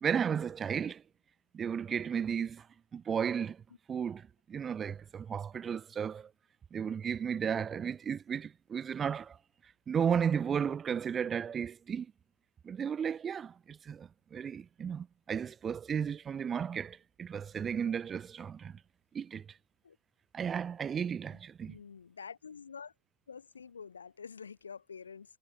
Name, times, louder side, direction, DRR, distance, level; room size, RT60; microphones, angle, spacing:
voice 1, 0.0-1.0 1.5-2.7 2.9-3.6 3.9-6.3 6.7-9.4 9.9-12.1 12.6-18.8 19.1-19.4 20.3-21.8, right 7 dB, 20° right, 2.8 m, -34 dB
voice 2, 21.7-22.9 23.3-25.4, left 6 dB, 70° left, 4.4 m, -47 dB
figure-of-eight pair, 90°, 0 cm